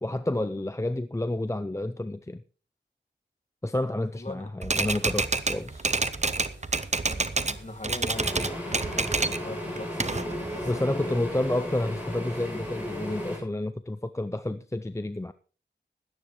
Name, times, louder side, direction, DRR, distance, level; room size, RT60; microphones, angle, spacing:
voice 1, 0.0-2.4 3.6-5.9 10.7-15.3, left 1 dB, 15° left, 11 dB, 0.6 m, -30 dB
voice 2, 4.1-4.5 7.0-11.2, left 2 dB, 35° left, 6 dB, 2.2 m, -42 dB
Typewriter, 4.6-7.6 7.8-9.4 9.8-10.8, right 3 dB, 35° right, 0.8 m, -28 dB
sound 1, 4.9-13.4, right 1 dB, 90° right, 7.3 m, -51 dB
sound 2, 8.1-13.4, equal, 10° right, 7.2 m, -35 dB
17.0 x 12.0 x 3.1 m, 0.36 s
wide cardioid pair, 70°, 19 cm